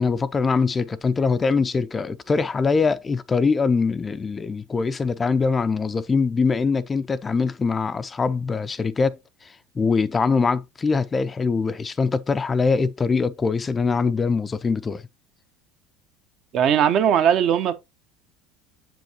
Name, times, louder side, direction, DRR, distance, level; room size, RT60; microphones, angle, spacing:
voice 1, 0.0-15.0, left 4 dB, 25° left, 0.4 m, -23 dB
voice 2, 16.5-17.7, right 9 dB, 55° right, 0.9 m, -19 dB
7.4 x 5.1 x 2.8 m
hypercardioid pair, 85°, 0 cm